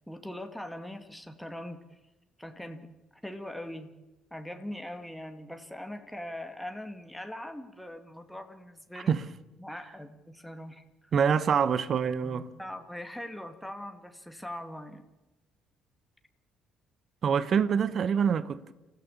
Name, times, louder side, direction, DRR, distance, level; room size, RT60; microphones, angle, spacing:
voice 1, 0.1-1.8 2.4-2.9 3.2-3.9 4.3-9.1 9.6-11.1 12.2-15.1, left 1 dB, ahead, 2.1 m, -41 dB
voice 2, 11.1-12.5 17.2-18.7, right 7 dB, 45° right, 1.1 m, -25 dB
29.0 x 15.5 x 7.3 m
figure-of-eight pair, 45°, 0 cm